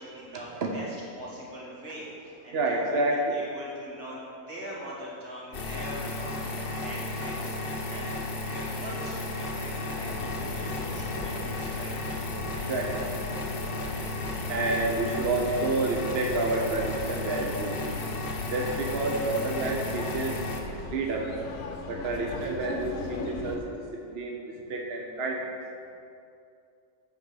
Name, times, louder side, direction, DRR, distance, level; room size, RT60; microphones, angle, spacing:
voice 1, 0.0-3.0 3.3-8.1 8.5-11.9 20.8-20.9, equal, 75° right, -6 dB, 2.5 m, -42 dB
voice 2, 2.5-3.4 12.7-13.1 14.5-17.8 18.5-20.4 20.9-21.3 21.9-23.6 24.1-24.4 24.7-25.5, right 2 dB, 50° right, 1 dB, 0.9 m, -29 dB
sound 1, 5.5-20.6, left 2 dB, 45° left, 0.9 m, -34 dB
sound 2, 7.2-8.5, equal, 15° right, 0.5 m, -47 dB
sound 3, 10.0-23.6, left 4 dB, 80° left, 1.3 m, -40 dB
8.0 x 5.1 x 6.2 m, 2.5 s
omnidirectional pair, 1.6 m